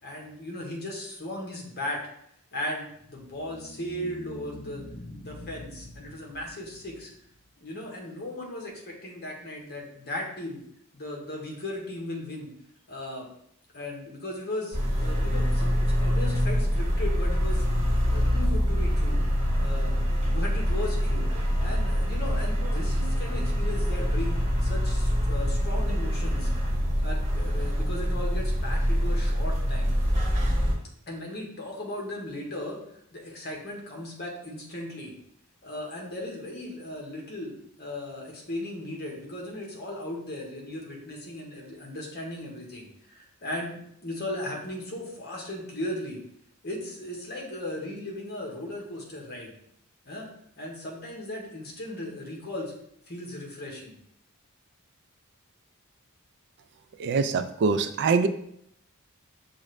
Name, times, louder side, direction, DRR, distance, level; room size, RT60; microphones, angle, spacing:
voice 1, 0.0-2.0 2.5-4.8 5.2-7.1 7.6-10.6 10.9-12.5 12.9-13.3 13.7-17.7 18.1-19.2 19.6-26.5 26.9-29.9 31.1-32.8 33.1-35.1 35.6-37.5 37.8-46.2 46.6-49.5 50.0-50.3 50.6-52.7 53.1-53.9, left 1 dB, 45° left, -1 dB, 1.1 m, -37 dB
sound 1, 2.9-7.4, left 1 dB, 70° left, 0.9 m, -45 dB
sound 2, 14.7-30.7, equal, 30° right, 1.3 m, -25 dB
voice 2, 57.0-58.3, right 4 dB, 55° right, 10 dB, 0.3 m, -24 dB
6.2 x 2.5 x 3.2 m, 0.71 s
head